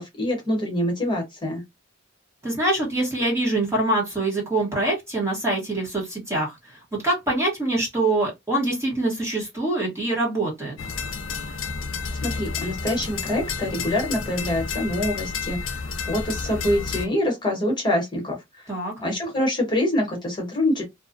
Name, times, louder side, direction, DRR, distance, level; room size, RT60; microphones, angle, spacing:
voice 1, 0.0-1.6 12.1-18.7 19.0-20.8, left 1 dB, 25° left, 1.1 m, -25 dB
voice 2, 2.4-6.7 7.0-10.8 18.7-18.9, right 2 dB, 15° right, 1.1 m, -24 dB
sound 1, 10.8-17.1, left 5 dB, 70° left, 0.5 m, -31 dB
2.5 x 2.3 x 2.5 m
head